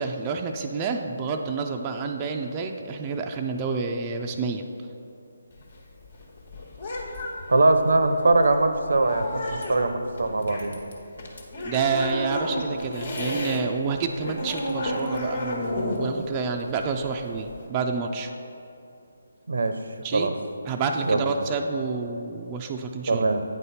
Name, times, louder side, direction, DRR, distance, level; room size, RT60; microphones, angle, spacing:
voice 1, 0.0-4.7 11.6-18.3 20.0-20.3 20.7-23.2, right 5 dB, 20° right, 2 dB, 0.4 m, -29 dB
sound 1, 5.5-13.6 13.9-17.7, left 1 dB, 55° left, 1.4 m, -32 dB
voice 2, 7.5-10.8 19.5-19.8 20.1-20.3 21.0-21.3 23.1-23.4, right 2 dB, 70° right, 8 dB, 0.6 m, -22 dB
9.0 x 4.2 x 5.5 m, 2.7 s
figure-of-eight pair, 150°, 0 cm